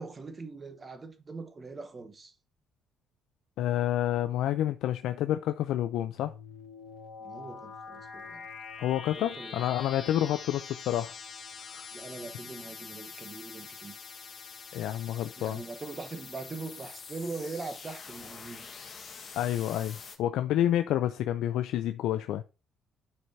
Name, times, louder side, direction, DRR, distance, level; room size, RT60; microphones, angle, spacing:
voice 1, 0.0-2.3 7.2-8.5 9.2-9.7 10.1-10.3 11.9-14.0 15.4-18.7, right 3 dB, 25° right, 1.1 m, -41 dB
voice 2, 3.6-6.3 8.8-11.1 11.7-11.9 14.7-15.6 19.4-22.4, left 12 dB, 85° left, 0.4 m, -29 dB
sound 1, 6.1-20.2, left 5 dB, 45° left, 1.4 m, -45 dB
12.0 x 4.7 x 2.7 m
cardioid pair, 110°, 0 cm